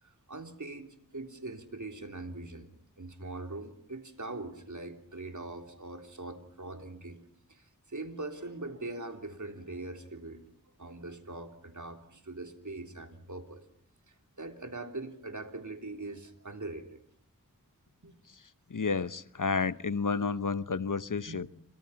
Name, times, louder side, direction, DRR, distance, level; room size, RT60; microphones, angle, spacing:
voice 1, 0.0-2.7 3.0-7.2 7.5-10.4 10.8-13.6 14.1-17.0 18.0-18.1 21.3-21.5, right 2 dB, 65° right, 3.4 m, -42 dB
voice 2, 18.7-21.5, left 5 dB, 70° left, 0.9 m, -31 dB
29.0 x 26.0 x 5.8 m
wide cardioid pair, 45°, 32 cm